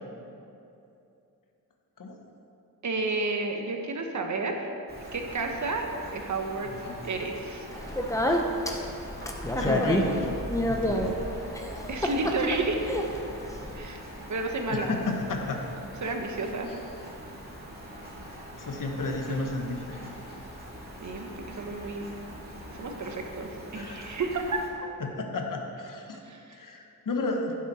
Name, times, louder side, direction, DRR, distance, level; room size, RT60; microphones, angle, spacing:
voice 1, 2.8-4.6 5.1-5.9 6.1-6.7 7.0-7.7 11.9-12.8 13.7-14.9 16.0-16.7 21.0-22.0 22.7-24.6 26.2-26.6, right 3 dB, 50° right, 3 dB, 1.1 m, -31 dB
Rain, 4.9-24.7, equal, 25° right, 2.3 m, -43 dB
voice 2, 6.7-7.1 9.4-11.0 14.7-15.6 16.7-16.8 18.5-20.1 23.7-24.2 25.0-26.2 26.5-27.5, left 3 dB, 60° left, 2 dB, 1.2 m, -33 dB
Speech, 7.7-13.8, equal, 10° left, 0.7 m, -29 dB
15.0 x 7.4 x 4.2 m, 2.7 s
wide cardioid pair, 165°, 36 cm